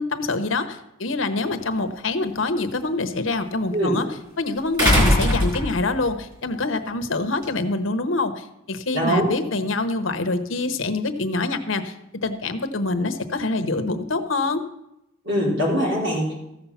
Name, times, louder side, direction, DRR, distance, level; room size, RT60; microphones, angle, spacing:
voice 1, 0.0-4.1 4.4-14.6, left 3 dB, 75° left, 9 dB, 1.0 m, -25 dB
sound 1, 1.5-1.6 4.8-6.1 7.4-7.5, left 1 dB, 20° right, 3.6 m, -19 dB
voice 2, 8.9-9.3 15.2-16.3, equal, 70° right, -4 dB, 4.6 m, -22 dB
14.5 x 7.1 x 5.7 m, 0.87 s
head